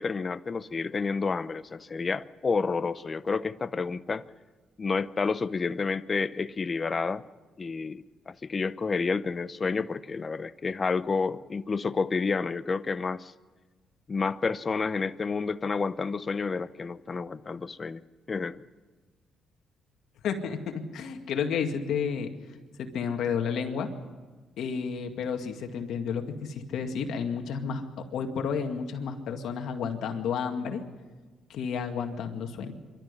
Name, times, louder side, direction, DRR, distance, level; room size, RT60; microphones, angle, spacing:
voice 1, 0.0-4.2 4.8-7.2 7.6-13.3 14.1-18.0 18.3-18.6, left 4 dB, 35° left, 15 dB, 0.7 m, -30 dB
voice 2, 20.2-22.3 22.8-23.9 24.6-27.8 28.1-30.8 31.5-32.7, left 6 dB, 75° left, 5 dB, 2.1 m, -31 dB
25.0 x 12.5 x 9.8 m, 1.3 s
cardioid pair, 90°, 0 cm